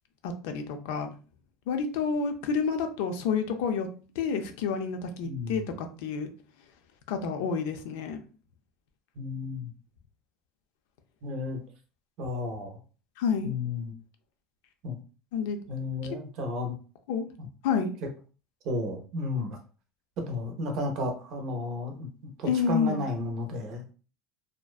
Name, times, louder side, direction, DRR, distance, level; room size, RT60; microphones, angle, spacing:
voice 1, 0.2-1.1 1.7-3.9 4.2-6.3 7.1-8.2 13.2-13.5 15.3-15.6 17.1-17.3 17.6-17.9 22.4-23.0, left 6 dB, 75° left, 6 dB, 0.4 m, -29 dB
voice 2, 5.2-5.7 9.2-9.7 11.2-11.6 12.2-12.8 13.4-13.9 14.8-15.0 15.7-16.7 17.4-17.5 18.6-19.6 20.2-23.8, left 2 dB, 50° right, 4 dB, 0.6 m, -33 dB
2.5 x 2.1 x 2.3 m, 0.37 s
cardioid pair, 155°, 0 cm